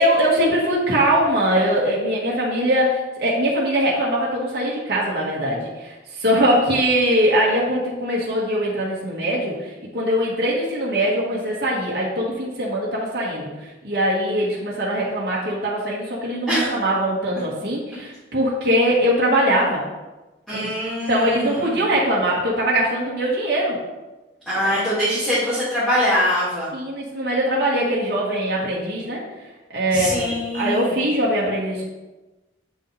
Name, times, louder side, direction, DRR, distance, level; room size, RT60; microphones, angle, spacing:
voice 1, 0.0-13.5 13.8-19.8 20.5-20.7 21.1-23.8 24.5-24.8 26.7-29.2 29.7-31.8, equal, 60° right, -5 dB, 1.6 m, -21 dB
voice 2, 20.5-21.9 24.5-26.7 29.9-31.0, equal, ahead, -13 dB, 2.2 m, -23 dB
8.1 x 5.5 x 3.3 m, 1.1 s
head